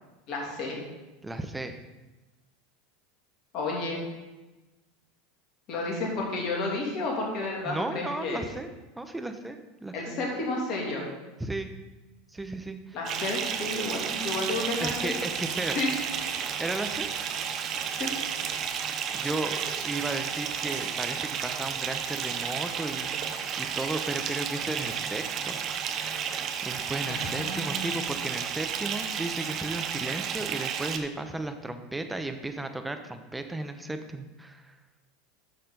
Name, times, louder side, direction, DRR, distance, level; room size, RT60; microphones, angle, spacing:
voice 1, 0.3-0.8 3.5-4.0 5.7-8.4 9.9-11.1 12.9-15.1 15.7-15.9 17.9-18.1 27.0-27.9, left 2 dB, 50° left, -2 dB, 2.8 m, -31 dB
voice 2, 1.2-1.8 7.6-10.1 11.4-11.7 12.3-13.0 14.8-15.7 16.6-17.1 19.1-25.6 26.6-34.7, right 2 dB, 10° right, 7 dB, 0.9 m, -35 dB
Bathtub (filling or washing) / Fill (with liquid), 13.1-31.0, right 7 dB, 45° right, 0.7 m, -32 dB
sound 1, 14.2-21.3, right 4 dB, 70° right, 1.5 m, -46 dB
9.6 x 6.6 x 4.0 m, 1.1 s
hypercardioid pair, 85°, 0 cm